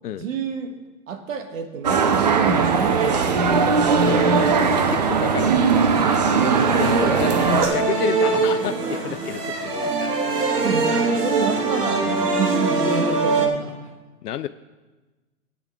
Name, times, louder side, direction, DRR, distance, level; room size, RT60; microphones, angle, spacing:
voice 1, 0.1-0.8 1.1-3.6 6.1-7.1 10.6-10.9 11.2-12.1 12.3-13.9, right 7 dB, 55° right, 6 dB, 1.3 m, -29 dB
sound 1, 1.8-7.6, right 5 dB, 30° right, 0.4 m, -19 dB
sound 2, 2.4-13.5, right 3 dB, 85° right, 1.8 m, -23 dB
voice 2, 4.8-5.6 6.7-7.3 7.6-10.1 14.2-14.5, left 11 dB, 80° left, 12 dB, 0.5 m, -30 dB
13.5 x 8.4 x 3.6 m, 1.2 s
hypercardioid pair, 135°, 46 cm